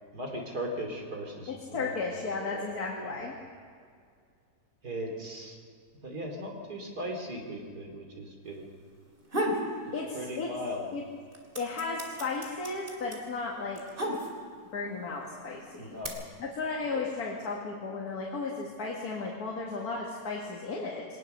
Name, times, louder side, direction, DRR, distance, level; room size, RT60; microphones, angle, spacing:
voice 1, 0.1-1.9 2.4-2.7 3.0-3.2 4.8-5.6 6.0-8.7 9.8-10.9 15.8-16.2 16.9-17.0, equal, 75° right, 2 dB, 3.5 m, -38 dB
voice 2, 1.5-3.3 9.9-10.5 10.9-11.0 11.6-13.8 14.7-16.0 16.4-21.0, left 4 dB, 65° left, -2 dB, 2.4 m, -34 dB
sound 1, 9.0-9.7 10.1-10.8 11.1-14.7 15.4-16.1, equal, 30° right, 2.8 m, -33 dB
22.0 x 19.0 x 6.7 m, 2.1 s
omnidirectional pair, 1.7 m